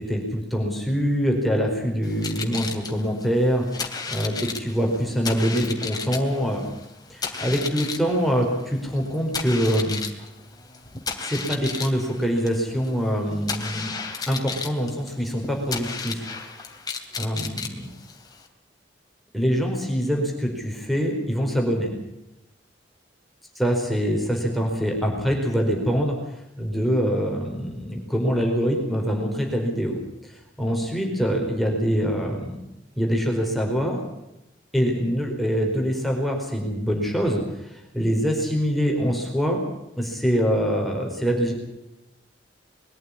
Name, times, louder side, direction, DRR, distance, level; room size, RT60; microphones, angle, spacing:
voice 1, 0.0-3.6 4.1-6.6 7.1-10.0 11.2-13.9 14.3-16.2 17.2-17.9 19.3-21.9 23.6-26.1 26.6-32.6 32.9-34.0 34.7-39.6 40.0-41.5, equal, ahead, 0 dB, 4.6 m, -24 dB
sound 1, 2.0-18.5, left 5 dB, 20° left, 2.8 m, -34 dB
22.0 x 14.0 x 9.8 m, 0.90 s
head